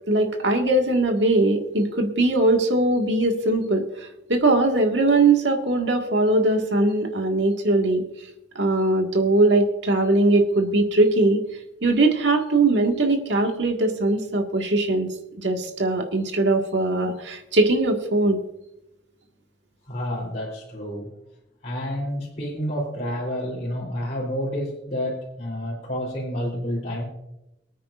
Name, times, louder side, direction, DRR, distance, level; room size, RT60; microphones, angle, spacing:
voice 1, 0.1-3.9 4.3-8.0 8.6-11.4 11.8-18.4, right 2 dB, 80° right, 2 dB, 1.8 m, -20 dB
voice 2, 19.9-21.1 21.6-27.0, equal, 40° left, -6 dB, 3.1 m, -29 dB
23.5 x 9.3 x 2.5 m, 0.89 s
head